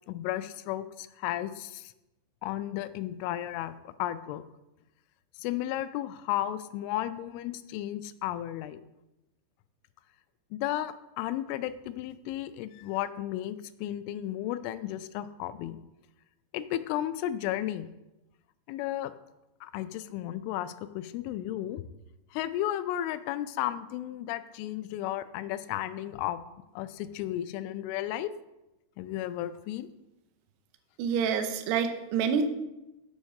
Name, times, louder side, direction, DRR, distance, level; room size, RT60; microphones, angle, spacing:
voice 1, 0.1-1.9 2.4-4.4 5.4-8.8 10.5-15.8 16.5-17.9 18.7-19.1 19.6-21.8 22.3-26.4 26.8-28.3 29.0-29.9, left 13 dB, 85° left, 12 dB, 3.0 m, -34 dB
voice 2, 31.0-32.5, right 6 dB, 80° right, 7 dB, 2.5 m, -27 dB
7.3 x 7.1 x 6.4 m, 0.96 s
omnidirectional pair, 5.5 m